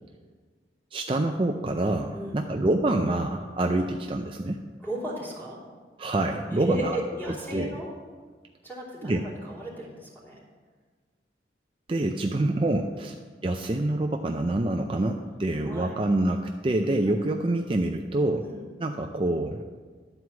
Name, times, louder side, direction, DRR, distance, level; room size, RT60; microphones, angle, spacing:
voice 1, 0.9-4.6 6.0-7.0 7.5-7.7 9.0-9.2 11.9-13.2 13.4-18.5 18.8-19.6, right 2 dB, 30° right, 4 dB, 0.4 m, -26 dB
voice 2, 4.8-5.6 6.5-7.9 8.6-10.4 13.0-13.1 15.6-15.9 17.1-17.2 18.4-18.6, right 1 dB, 10° left, -7 dB, 3.2 m, -35 dB
11.5 x 4.7 x 7.1 m, 1.5 s
head